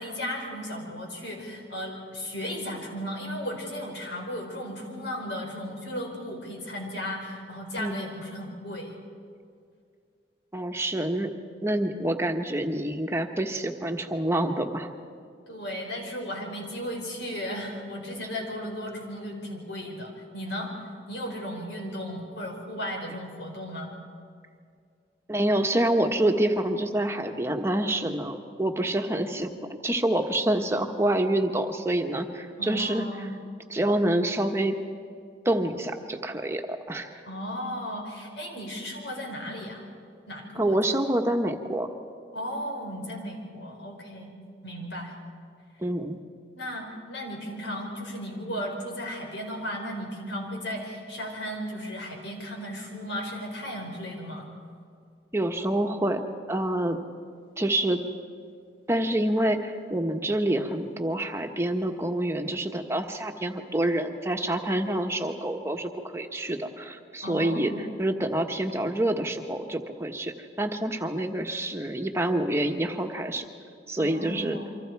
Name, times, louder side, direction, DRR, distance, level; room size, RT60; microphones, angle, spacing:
voice 1, 0.0-8.9 15.5-20.7 21.1-23.9 32.6-33.3 37.2-39.8 40.3-40.8 42.3-44.3 44.6-45.1 46.5-54.5 67.2-67.9 74.0-74.7, equal, 85° left, 1 dB, 4.8 m, -35 dB
voice 2, 10.5-11.3 11.6-14.9 25.3-33.1 33.7-34.8 35.4-37.1 40.6-41.9 45.8-46.2 55.3-57.0 57.6-58.0 58.9-67.7 68.0-73.5 73.9-74.6, right 1 dB, 15° right, 4 dB, 1.2 m, -27 dB
28.0 x 25.0 x 4.7 m, 2.2 s
head